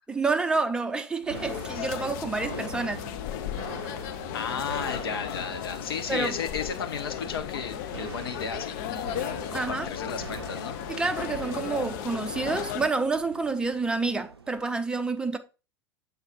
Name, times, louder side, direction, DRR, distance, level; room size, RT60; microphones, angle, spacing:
voice 1, 0.1-3.0 6.1-6.4 9.5-9.9 10.9-15.4, right 3 dB, 5° right, 0.6 m, -28 dB
sound 1, 1.2-14.7, right 5 dB, 85° right, 0.4 m, -43 dB
sound 2, 1.3-12.9, left 11 dB, 50° left, 0.6 m, -35 dB
voice 2, 4.3-10.7, left 6 dB, 70° left, 1.0 m, -34 dB
7.2 x 4.0 x 4.1 m
figure-of-eight pair, 80°, 13 cm